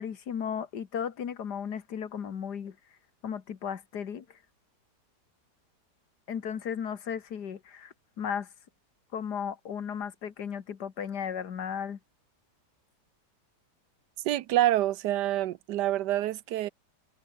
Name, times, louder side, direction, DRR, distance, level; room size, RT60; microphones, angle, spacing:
voice 1, 0.0-2.8 3.2-4.4 6.3-8.5 9.1-12.0, left 7 dB, 70° left, 2.1 m, -35 dB
voice 2, 14.2-16.7, right 14 dB, 80° right, 1.4 m, -27 dB
omnidirectional pair, 1.8 m